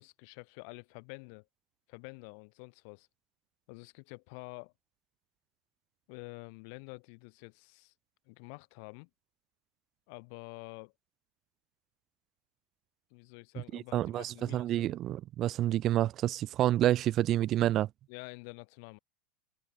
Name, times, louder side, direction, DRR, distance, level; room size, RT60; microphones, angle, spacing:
voice 1, 0.0-1.4 1.9-3.1 3.7-4.7 6.1-7.9 8.3-9.1 10.1-10.9 13.1-14.9 18.1-19.0, left 37 dB, 55° left, 6.3 m, -48 dB
voice 2, 13.7-17.9, right 13 dB, 40° right, 1.2 m, -28 dB
figure-of-eight pair, 80°, 0 cm